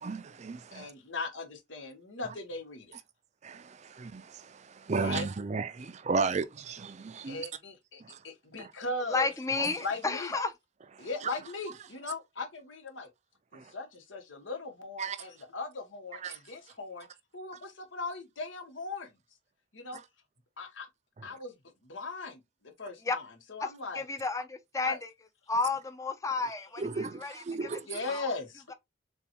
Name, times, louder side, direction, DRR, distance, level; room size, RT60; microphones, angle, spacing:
voice 1, 0.0-0.9 3.4-7.5 8.0-8.2 8.6-8.7 9.6-9.7 11.0-11.3 13.5-13.7 15.0-15.2 16.1-16.4 26.8-27.8, right 4 dB, 35° right, 0.4 m, -34 dB
voice 2, 0.7-3.0 5.0-5.2 7.3-9.3 9.8-10.3 11.0-13.1 13.5-17.1 17.3-19.1 19.7-20.0 20.6-20.9 21.2-21.5 21.8-24.1 24.8-25.0 27.9-28.6, left 3 dB, 90° left, 1.3 m, -39 dB
voice 3, 9.1-10.5 23.0-23.2 23.6-23.7 23.9-25.1 25.5-28.3, left 3 dB, 15° left, 0.5 m, -32 dB
6.8 x 2.4 x 2.9 m
head